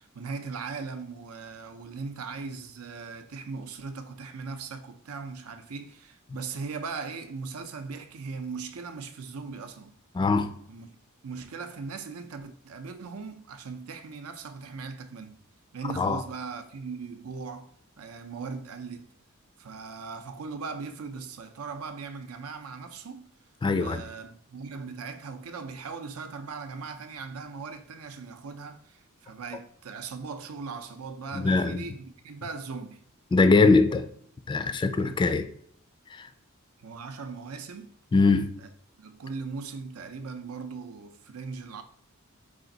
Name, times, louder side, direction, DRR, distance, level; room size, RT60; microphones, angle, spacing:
voice 1, 0.0-9.9 10.7-10.9 11.2-15.4 15.7-19.1 19.6-23.3 23.7-33.0 35.0-35.4 36.8-37.9 39.0-41.8, right 4 dB, 90° right, 0.6 m, -39 dB
voice 2, 10.1-10.5 16.0-16.2 23.6-24.0 31.3-31.9 33.3-34.1 34.5-35.4 36.1-36.3 38.1-38.5, left 3 dB, 20° left, 0.3 m, -22 dB
4.9 x 2.5 x 3.9 m
head